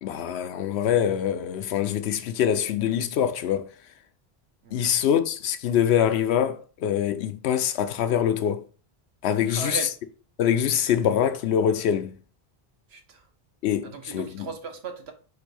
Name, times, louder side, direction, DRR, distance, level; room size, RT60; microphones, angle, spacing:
voice 1, 0.0-3.7 4.7-8.6 9.2-9.8 10.4-12.1 13.6-14.5, left 9 dB, 85° left, 0.8 m, -24 dB
voice 2, 4.6-4.9 9.5-9.9 12.9-13.3 13.8-15.1, right 4 dB, 80° right, 1.1 m, -37 dB
4.3 x 2.6 x 4.6 m
omnidirectional pair, 1.1 m